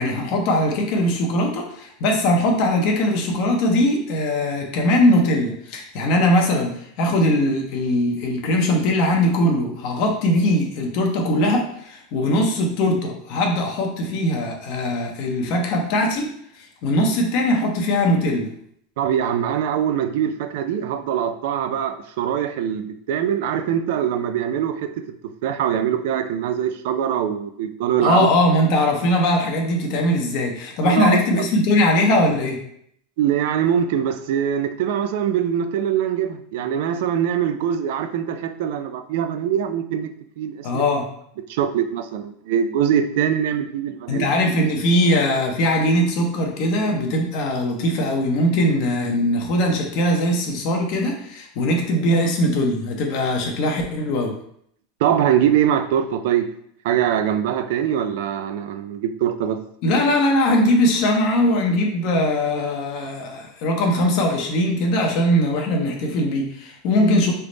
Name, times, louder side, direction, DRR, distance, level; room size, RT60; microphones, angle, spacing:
voice 1, 0.0-16.3 16.6-18.5 28.0-32.6 40.6-41.1 44.1-54.3 59.8-67.3, left 1 dB, 55° left, 1 dB, 0.7 m, -20 dB
voice 2, 19.0-24.9 25.4-28.3 30.8-31.5 33.2-40.1 40.4-40.8 41.5-44.3 55.0-56.5 56.8-59.6, right 9 dB, 70° right, 9 dB, 0.3 m, -23 dB
3.3 x 2.0 x 3.8 m, 0.68 s
supercardioid pair, 125°, 0 cm